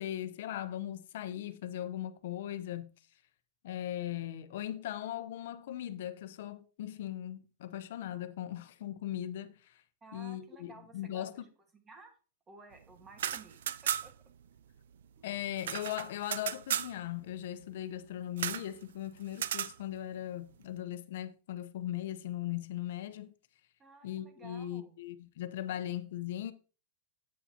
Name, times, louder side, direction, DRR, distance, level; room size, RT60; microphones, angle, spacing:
voice 1, 0.0-2.9 3.6-9.8 10.1-11.4 15.2-23.3 24.0-26.5, left 12 dB, 70° left, 0.8 m, -39 dB
voice 2, 10.0-12.1 12.5-14.1 15.2-15.3 23.8-25.0, right 4 dB, 15° right, 1.6 m, -55 dB
sound 1, 13.1-14.3 14.6-14.7 14.9-16.9 18.4-18.7 19.3-19.7, right 10 dB, 90° right, 0.3 m, -35 dB
8.6 x 7.0 x 2.8 m
supercardioid pair, 150°, 0 cm